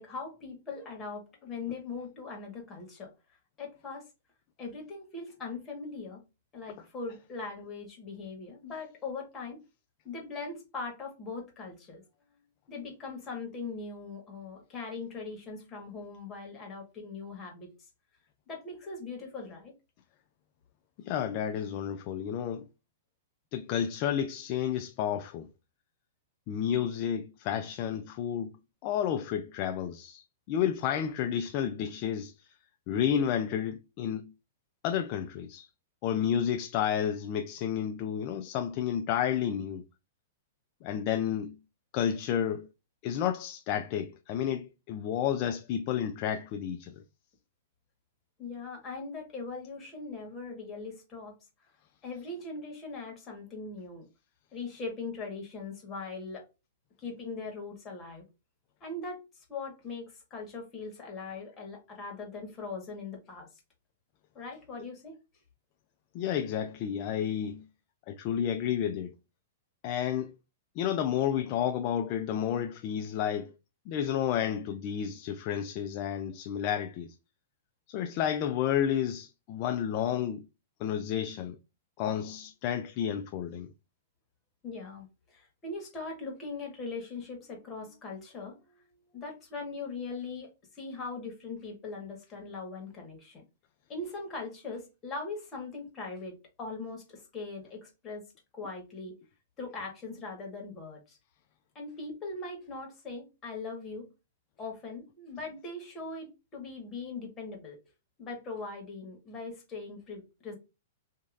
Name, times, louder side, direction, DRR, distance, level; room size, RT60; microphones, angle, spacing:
voice 1, 0.0-3.1 3.6-4.1 4.6-6.2 6.5-9.6 10.0-12.0 12.7-17.7 18.5-19.7 48.4-51.3 52.0-54.1 54.5-56.5 57.0-58.2 58.8-63.5 64.3-65.2 84.6-88.8 89.1-93.4 93.9-98.2 98.5-99.2 99.6-101.2 101.7-104.1 104.6-107.8 108.2-110.6, left 3 dB, 25° left, 1.4 m, -40 dB
voice 2, 21.0-22.7 23.5-25.5 26.5-28.5 28.8-32.5 32.9-34.3 34.8-35.7 36.0-39.8 40.8-41.5 41.9-42.7 43.0-47.0 66.1-67.6 68.1-69.1 69.8-70.3 70.8-73.5 73.9-77.1 77.9-80.5 80.8-81.6 82.0-83.7, left 9 dB, 45° left, 0.3 m, -31 dB
2.9 x 2.6 x 2.5 m
hypercardioid pair, 120°, 0 cm